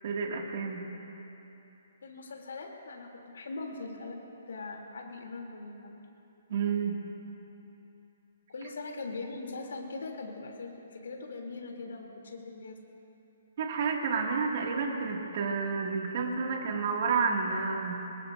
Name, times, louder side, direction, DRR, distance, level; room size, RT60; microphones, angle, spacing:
voice 1, 0.0-0.8 6.5-7.0 13.6-18.0, right 5 dB, 50° right, 0 dB, 2.1 m, -30 dB
voice 2, 2.0-4.2 4.5-5.9 8.5-12.8, left 3 dB, 85° left, 0 dB, 3.1 m, -41 dB
24.5 x 21.5 x 2.7 m, 3.0 s
hypercardioid pair, 165°, 0 cm